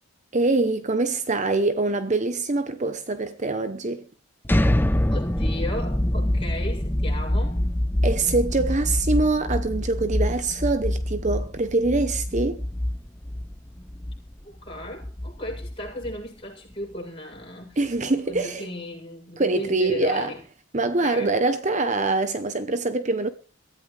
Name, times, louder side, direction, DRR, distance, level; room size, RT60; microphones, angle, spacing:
voice 1, 0.3-4.0 8.0-12.6 17.8-18.7 19.4-20.3 20.7-23.3, right 3 dB, 35° right, 0.9 m, -24 dB
sound 1, 4.4-16.3, left 1 dB, 10° left, 0.7 m, -25 dB
voice 2, 5.1-7.7 14.4-17.8 18.3-20.4 20.8-21.4, left 1 dB, 25° left, 7.7 m, -36 dB
22.5 x 14.0 x 3.3 m
head